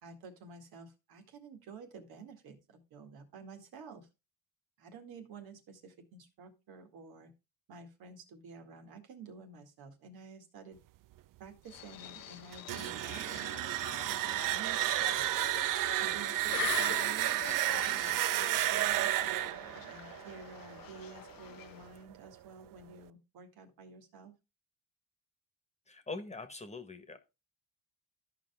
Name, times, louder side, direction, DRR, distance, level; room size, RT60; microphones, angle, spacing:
voice 1, 0.0-4.1 4.8-7.3 7.7-10.8 11.4-13.5 14.1-15.3 16.0-19.1 19.7-24.3, right 4 dB, 80° right, 5 dB, 2.1 m, -51 dB
sound 1, 11.7-22.1, left 12 dB, 70° left, 0.8 m, -45 dB
sound 2, 12.5-21.3, right 14 dB, 65° right, 0.5 m, -32 dB
voice 2, 25.9-27.2, left 3 dB, 20° left, 9 dB, 1.3 m, -43 dB
13.5 x 5.2 x 3.5 m, 0.27 s
cardioid pair, 100°, 36 cm